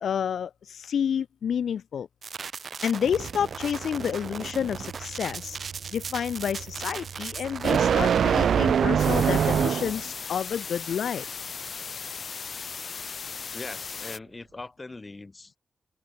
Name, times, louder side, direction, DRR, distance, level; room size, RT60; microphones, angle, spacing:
voice 1, 0.0-2.1 2.8-5.6 5.9-11.3, left 8 dB, 80° left, 2.1 m, -29 dB
sound 1, 2.2-7.8, right 6 dB, 50° right, 6.9 m, -38 dB
sound 2, 3.1-10.1, right 8 dB, 75° right, 0.4 m, -25 dB
sound 3, 9.0-14.2, left 5 dB, 50° left, 3.0 m, -37 dB
voice 2, 13.5-15.6, left 3 dB, 25° left, 7.9 m, -41 dB
open air
wide cardioid pair, 125°, 0 cm